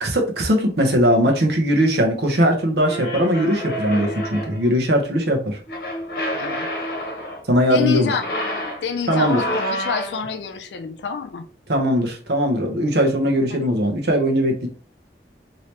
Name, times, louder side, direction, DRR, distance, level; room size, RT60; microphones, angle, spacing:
voice 1, 0.0-5.6 7.5-8.1 9.1-9.4 11.7-14.7, equal, 65° right, 0.8 m, -19 dB
sound 1, 2.8-4.7 5.7-7.5 8.1-10.3, equal, 55° left, 1.1 m, -28 dB
voice 2, 7.7-8.3 8.8-11.5 13.5-13.6, left 5 dB, 75° left, 0.4 m, -27 dB
3.2 x 2.8 x 2.9 m
head